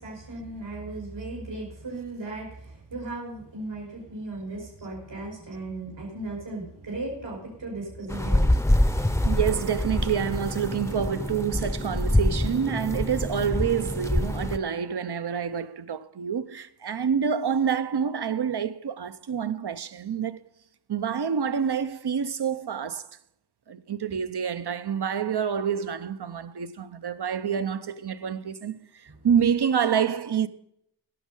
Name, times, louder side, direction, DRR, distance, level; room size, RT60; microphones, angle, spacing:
voice 1, 0.0-2.5 2.9-8.4, right 2 dB, 80° right, 4.1 m, -36 dB
sound 1, 8.1-14.6, left 1 dB, 5° left, 0.6 m, -25 dB
voice 2, 9.2-20.4 20.9-23.1 23.7-28.8 29.2-30.5, right 7 dB, 65° right, 0.7 m, -27 dB
17.0 x 6.4 x 5.4 m
wide cardioid pair, 70°, 43 cm